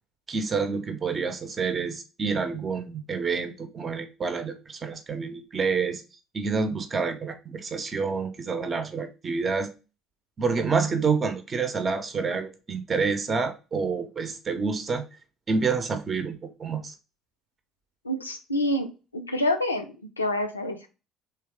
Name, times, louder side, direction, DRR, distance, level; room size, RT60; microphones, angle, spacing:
voice 1, 0.3-6.0 6.3-9.7 10.4-15.0 15.5-16.9, right 5 dB, 35° right, 7 dB, 0.6 m, -28 dB
voice 2, 18.0-18.9 19.1-19.8 20.2-20.9, left 1 dB, 90° left, 6 dB, 0.4 m, -27 dB
3.4 x 3.1 x 3.4 m, 0.31 s
figure-of-eight pair, 55°, 0 cm